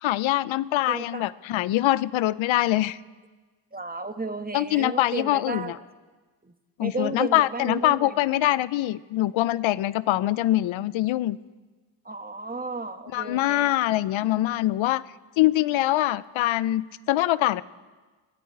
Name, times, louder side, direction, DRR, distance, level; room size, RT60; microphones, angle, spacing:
voice 1, 0.0-3.0 4.5-5.8 6.8-11.4 13.1-15.0 15.4-17.6, left 15 dB, 85° left, 17 dB, 0.6 m, -24 dB
voice 2, 0.9-1.3 3.7-5.8 6.4-6.5 6.8-8.2 12.0-13.7, right 3 dB, 20° right, 9 dB, 1.3 m, -33 dB
21.5 x 12.5 x 4.8 m, 1.3 s
cardioid pair, 55°, 46 cm